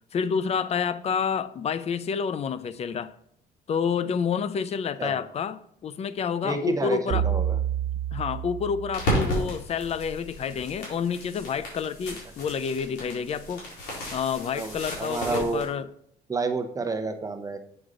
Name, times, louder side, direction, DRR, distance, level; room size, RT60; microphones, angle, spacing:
voice 1, 0.1-3.1 3.7-7.2 8.1-13.6 14.1-15.9, left 6 dB, 40° left, 15 dB, 0.5 m, -29 dB
voice 2, 6.4-7.6 14.6-15.6 16.3-17.6, right 3 dB, 20° right, 7 dB, 0.8 m, -29 dB
sound 1, 7.1-9.6, right 10 dB, 90° right, 1.4 m, -29 dB
sound 2, 8.9-15.7, equal, 90° left, 3.7 m, -33 dB
8.0 x 6.2 x 3.8 m, 0.69 s
cardioid pair, 110°, 17 cm